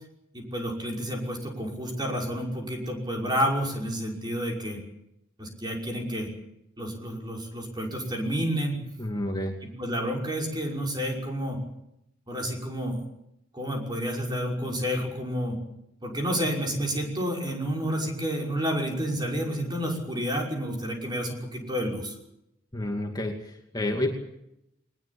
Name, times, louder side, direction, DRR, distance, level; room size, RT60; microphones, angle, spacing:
voice 1, 0.3-4.8 5.4-6.3 6.8-8.8 9.8-11.6 12.3-13.0 13.5-15.6 16.0-22.2, equal, 20° right, 1 dB, 5.8 m, -30 dB
voice 2, 9.0-9.5 22.7-24.1, left 1 dB, 20° left, 2 dB, 2.3 m, -29 dB
22.0 x 20.0 x 8.7 m, 0.83 s
head